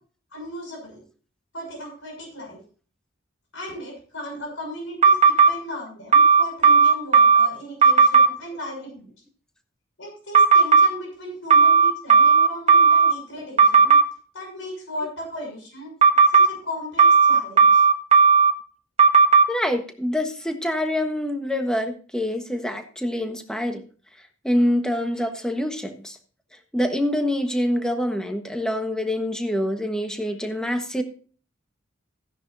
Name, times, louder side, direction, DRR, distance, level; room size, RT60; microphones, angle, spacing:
voice 1, 0.3-1.0 1.5-2.6 3.5-9.1 10.0-14.0 14.3-15.9 16.3-17.8, equal, 75° left, 0 dB, 6.5 m, -36 dB
sound 1, 5.0-5.5 6.1-7.5 7.8-8.3 10.3-10.9 11.5-13.1 13.6-14.0 16.0-16.5 17.0-18.5 19.0-19.4, right 5 dB, 35° right, 1.5 m, -14 dB
voice 2, 19.5-23.8 24.4-26.2 26.7-31.0, left 1 dB, 5° left, 5 dB, 1.3 m, -25 dB
15.0 x 10.5 x 2.7 m, 0.40 s
head